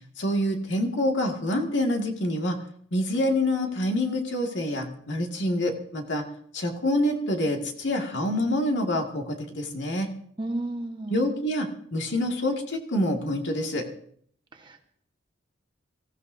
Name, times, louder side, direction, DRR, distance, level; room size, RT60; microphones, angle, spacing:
voice 1, 0.2-2.6 2.9-6.2 6.5-10.1 11.1-13.9, left 1 dB, 65° left, 2 dB, 2.0 m, -26 dB
voice 2, 10.4-11.3 14.5-14.8, right 2 dB, 25° right, 2 dB, 1.3 m, -33 dB
25.5 x 15.0 x 2.7 m, 0.62 s
head